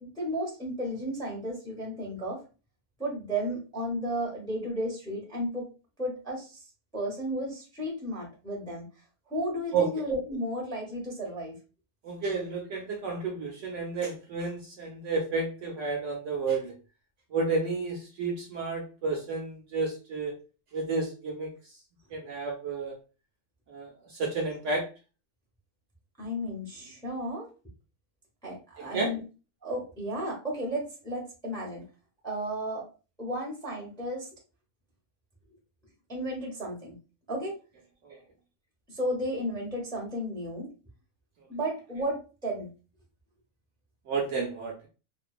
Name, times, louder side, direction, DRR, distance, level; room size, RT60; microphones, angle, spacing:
voice 1, 0.0-2.4 3.0-5.7 6.0-6.6 6.9-8.8 9.3-11.6 26.2-27.5 28.4-29.2 29.6-31.8 32.2-32.9 33.2-34.3 36.1-36.9 37.3-37.6 38.1-38.2 38.9-40.7 41.5-42.7, equal, 5° left, -2 dB, 0.6 m, -33 dB
voice 2, 12.0-16.7 17.3-20.3 20.7-21.5 22.1-22.9 23.7-23.9 24.2-24.9 28.9-29.1 38.0-38.1 44.1-44.9, right 4 dB, 65° right, 0 dB, 0.8 m, -31 dB
2.6 x 2.2 x 2.3 m, 0.34 s
omnidirectional pair, 1.5 m